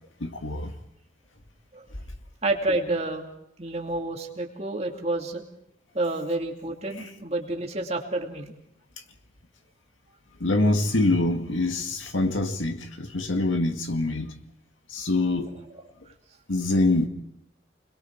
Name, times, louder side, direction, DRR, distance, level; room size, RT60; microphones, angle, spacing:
voice 1, 0.2-0.7 7.0-7.1 10.4-14.3 14.9-15.6 16.5-17.1, left 2 dB, 85° left, 2.1 m, -25 dB
voice 2, 2.4-3.2 3.6-5.4 5.9-8.5, right 2 dB, 35° right, 2.5 m, -29 dB
30.0 x 21.5 x 4.6 m
head